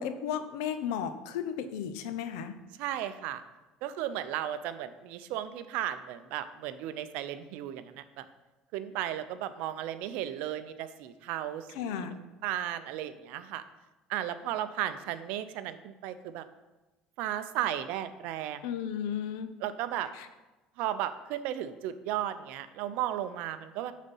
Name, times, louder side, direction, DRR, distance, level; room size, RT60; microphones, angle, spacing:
voice 1, 0.0-2.6 11.7-12.2 18.6-19.5 20.1-20.3, left 8 dB, 90° left, 10 dB, 0.7 m, -34 dB
voice 2, 2.8-3.4 3.8-8.2 8.7-12.0 12.4-13.6 14.1-16.4 17.2-18.6 19.6-20.1 20.8-23.9, right 11 dB, 75° right, 12 dB, 0.6 m, -35 dB
9.4 x 4.2 x 5.5 m, 1.1 s
cardioid pair, 115°, 3 cm